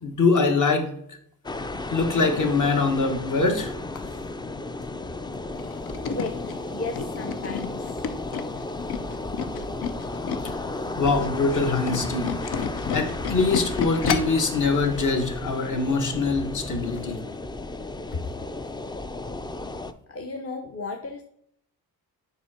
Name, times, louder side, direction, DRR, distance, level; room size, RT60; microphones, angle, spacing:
voice 1, 0.0-0.9 1.9-3.7 10.7-17.2, left 3 dB, 55° left, 4 dB, 1.5 m, -24 dB
sound 1, 1.4-19.9, left 2 dB, 15° left, 0.3 m, -34 dB
Tools, 5.6-10.6 10.9-14.4 14.9-15.0 15.3-15.4, left 6 dB, 85° left, 0.8 m, -31 dB
voice 2, 6.0-6.4 6.7-8.0 20.1-21.2, left 3 dB, 40° left, 3 dB, 0.7 m, -34 dB
7.4 x 5.6 x 4.3 m, 0.69 s
cardioid pair, 115°, 37 cm